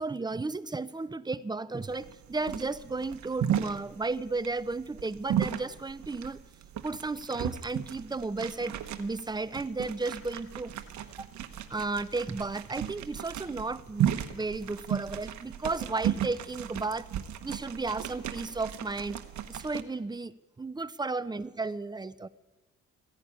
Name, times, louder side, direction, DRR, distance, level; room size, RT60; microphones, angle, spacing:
voice 1, 0.0-6.4 6.8-10.7 11.2-11.3 11.7-17.1 17.4-19.2 19.5-22.3, right 3 dB, 15° right, 15 dB, 0.6 m, -34 dB
sound 1, 1.9-19.8, right 10 dB, 70° right, 1.1 m, -35 dB
15.5 x 10.5 x 8.5 m, 1.2 s
cardioid pair, 90°, 30 cm